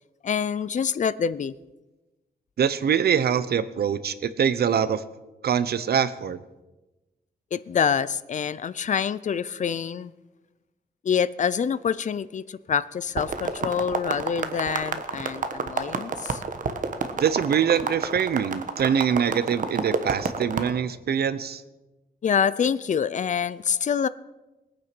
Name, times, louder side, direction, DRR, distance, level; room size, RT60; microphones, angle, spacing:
voice 1, 0.2-1.5 7.5-10.1 11.0-16.4 22.2-24.1, left 7 dB, 50° left, 17 dB, 0.5 m, -26 dB
voice 2, 2.6-5.0 5.4-6.4 17.2-21.6, right 8 dB, 75° right, 14 dB, 0.8 m, -24 dB
sound 1, 13.2-20.7, right 5 dB, 55° right, 1.1 m, -29 dB
20.5 x 9.1 x 6.1 m, 1.1 s
wide cardioid pair, 175°, 17 cm